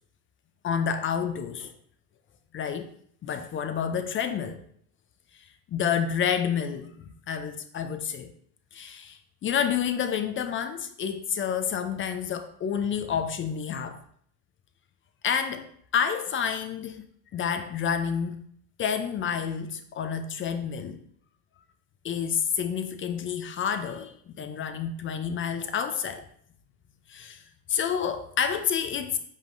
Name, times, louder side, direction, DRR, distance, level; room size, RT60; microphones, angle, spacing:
voice 1, 0.6-1.7 2.5-2.9 3.2-4.6 5.3-8.3 8.7-14.0 15.2-15.7 15.9-17.1 17.3-18.4 18.8-21.0 22.0-26.3 27.1-27.4 27.7-29.2, left 7 dB, 35° left, 9 dB, 0.4 m, -29 dB
4.9 x 3.6 x 2.5 m, 0.62 s
supercardioid pair, 100°, 41 cm